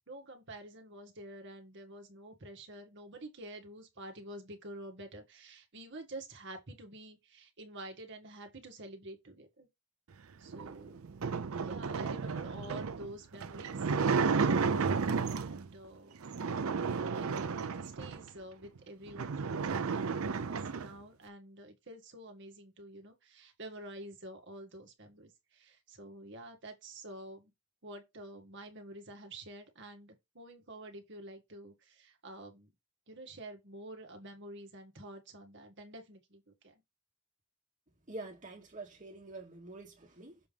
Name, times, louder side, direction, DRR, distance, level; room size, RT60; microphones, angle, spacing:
voice 1, 0.1-9.7 10.4-11.0 11.5-13.8 15.3-16.2 16.8-27.5 27.8-32.7 33.1-36.7, right 1 dB, 55° right, 1.8 m, -49 dB
sound 1, 10.5-15.7 16.2-18.3 18.8-18.9 19.1-20.9, right 5 dB, 85° right, 0.6 m, -32 dB
voice 2, 38.1-40.4, right 2 dB, 35° right, 2.1 m, -46 dB
7.0 x 3.5 x 5.1 m
head